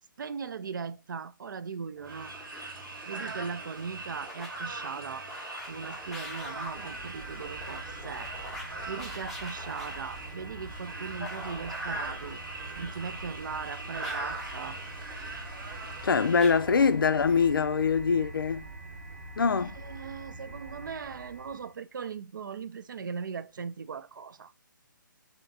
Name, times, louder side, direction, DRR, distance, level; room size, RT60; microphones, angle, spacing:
voice 1, 0.2-2.3 3.1-5.3 5.7-8.3 8.9-12.4 12.8-14.8 19.6-24.5, right 6 dB, 65° right, 0.4 m, -39 dB
sound 1, 1.9-17.6, left 1 dB, ahead, 0.6 m, -47 dB
sound 2, 2.0-16.4, right 2 dB, 90° right, 1.4 m, -41 dB
sound 3, 5.6-21.7, right 2 dB, 45° right, 0.9 m, -45 dB
voice 2, 16.0-18.7 19.4-19.8, left 5 dB, 85° left, 0.4 m, -24 dB
3.5 x 2.7 x 3.9 m
hypercardioid pair, 155°, 11 cm